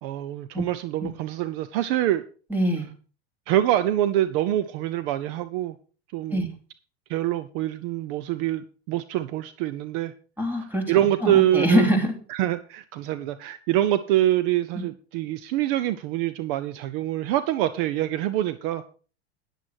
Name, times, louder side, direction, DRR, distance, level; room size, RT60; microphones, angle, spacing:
voice 1, 0.0-2.2 3.5-5.7 6.1-6.4 7.1-10.1 10.9-11.9 12.3-18.8, right 13 dB, 55° right, 13 dB, 0.9 m, -25 dB
voice 2, 2.5-2.9 6.3-6.5 10.4-10.9 11.2-12.2 14.7-14.8, equal, 5° right, 4 dB, 3.1 m, -23 dB
10.0 x 9.7 x 4.6 m, 0.38 s
hypercardioid pair, 110°, 34 cm